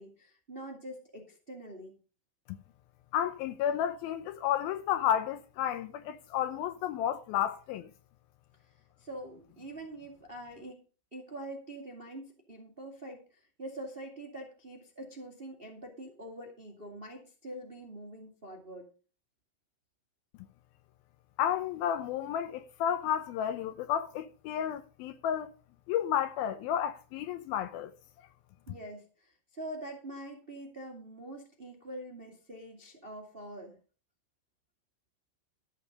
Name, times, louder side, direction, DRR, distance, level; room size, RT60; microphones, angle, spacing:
voice 1, 0.0-1.9 9.0-10.8 11.1-18.9 28.7-33.7, right 1 dB, 30° right, 1.1 m, -44 dB
voice 2, 3.1-7.9 21.4-25.5 25.9-27.9, left 10 dB, 75° left, 2.3 m, -31 dB
13.0 x 7.0 x 5.2 m
omnidirectional pair, 4.6 m